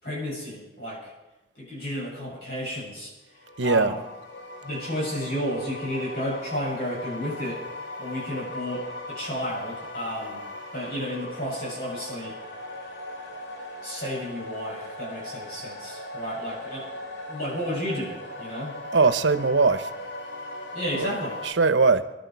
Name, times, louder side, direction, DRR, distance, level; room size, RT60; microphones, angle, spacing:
voice 1, 0.0-1.1 1.6-3.1 3.6-4.0 4.6-7.6 8.0-10.4 10.7-12.4 13.8-16.9 17.3-18.7 20.7-21.4, equal, 55° left, -4 dB, 7.7 m, -32 dB
sound 1, 3.3-21.5, left 1 dB, 80° left, 2.4 m, -39 dB
voice 2, 3.6-3.9 18.9-19.9 20.9-21.1 21.4-22.0, right 4 dB, 85° right, 12 dB, 0.9 m, -20 dB
23.5 x 12.0 x 4.7 m, 1.1 s
head